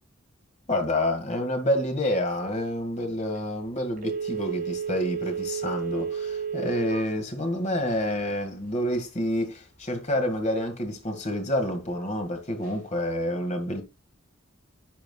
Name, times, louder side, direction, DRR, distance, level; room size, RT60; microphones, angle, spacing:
voice 1, 0.7-13.8, left 1 dB, 35° left, 2.0 m, -28 dB
Telephone, 4.0-7.1 7.5-7.6, right 6 dB, 45° right, 3.4 m, -31 dB
11.0 x 5.9 x 2.3 m
head